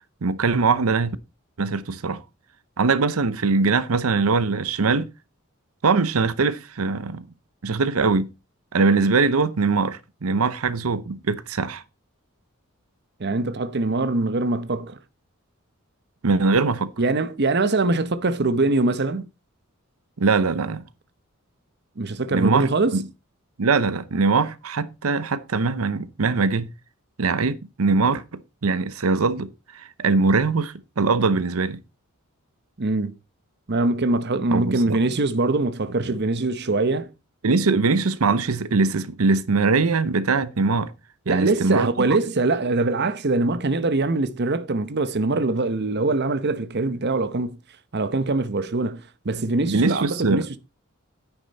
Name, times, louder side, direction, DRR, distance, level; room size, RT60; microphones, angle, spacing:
voice 1, 0.2-1.2 1.6-2.2 2.8-5.1 5.8-7.2 7.6-8.3 8.7-11.8 16.2-16.9 20.2-20.8 22.3-23.0 23.6-26.7 27.2-31.8 34.5-35.0 37.4-40.9 41.3-42.1 49.6-50.5, right 4 dB, 90° right, 0.7 m, -22 dB
voice 2, 13.2-15.0 17.0-19.3 22.0-23.0 32.8-33.1 33.7-37.1 41.3-47.6 47.9-50.6, right 2 dB, 50° right, 0.8 m, -23 dB
9.8 x 9.8 x 4.0 m
head